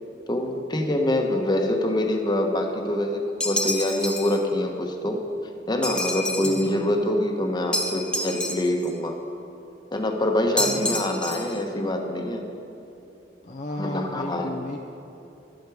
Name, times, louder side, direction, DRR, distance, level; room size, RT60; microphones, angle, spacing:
voice 1, 0.3-5.2 5.7-9.1 9.9-12.4 13.8-14.5, left 1 dB, 25° left, 3 dB, 1.2 m, -25 dB
sound 1, 3.4-4.4 5.8-6.7 7.7-8.9 10.6-11.6, left 1 dB, 5° left, 0.7 m, -28 dB
voice 2, 6.4-6.8 10.6-10.9 13.4-14.8, left 1 dB, 40° left, 0 dB, 0.7 m, -34 dB
12.0 x 11.5 x 4.9 m, 3.0 s
head